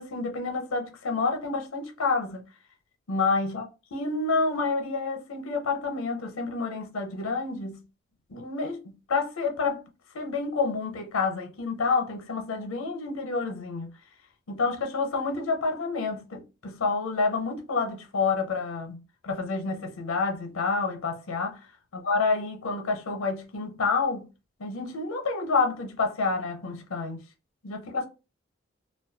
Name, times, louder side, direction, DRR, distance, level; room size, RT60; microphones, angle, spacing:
voice 1, 0.0-2.4 3.1-7.8 8.3-9.8 10.1-13.9 14.5-21.6 21.9-24.3 24.6-27.2 27.6-28.1, left 4 dB, 85° left, 0.6 m, -29 dB
2.2 x 2.2 x 2.6 m
head